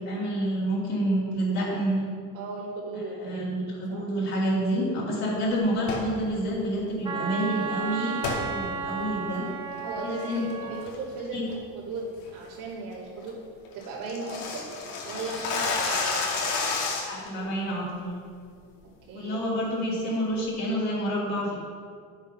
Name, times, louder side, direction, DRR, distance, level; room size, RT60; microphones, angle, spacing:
voice 1, 0.0-2.0 3.0-9.5 10.0-10.4 11.3-11.4 17.1-18.2 19.1-21.5, equal, 45° left, -8 dB, 3.0 m, -28 dB
voice 2, 2.3-3.5 3.9-4.1 9.8-13.3 13.7-14.6 15.0-16.4 19.1-19.4, right 3 dB, 60° right, -6 dB, 3.1 m, -36 dB
sound 1, 5.8-6.1 8.2-8.4 8.9-9.0 9.5-9.8 10.2-10.5 10.9-11.1 11.5-11.6 12.0-12.2 12.6-12.7 13.0-13.1 13.3-13.4 13.6-17.3, left 4 dB, 65° left, 2.4 m, -30 dB
Wind instrument woodwind instrument, 7.0-10.9, right 5 dB, 15° right, 0.7 m, -33 dB
11.0 x 7.3 x 5.8 m, 2.1 s
cardioid pair, 165°, 36 cm